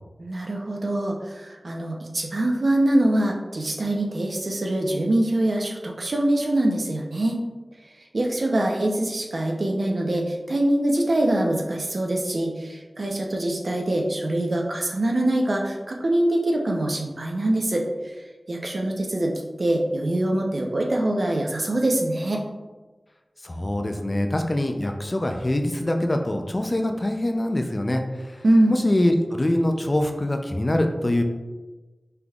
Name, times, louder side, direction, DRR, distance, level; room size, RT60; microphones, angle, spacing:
voice 1, 0.2-7.4 8.1-18.2 18.5-19.3 19.6-22.4 28.4-28.8, right 1 dB, 75° right, 0 dB, 0.7 m, -24 dB
voice 2, 23.4-31.2, left 1 dB, 40° left, 4 dB, 0.5 m, -24 dB
5.8 x 3.5 x 2.4 m, 1.2 s
wide cardioid pair, 45°, 0 cm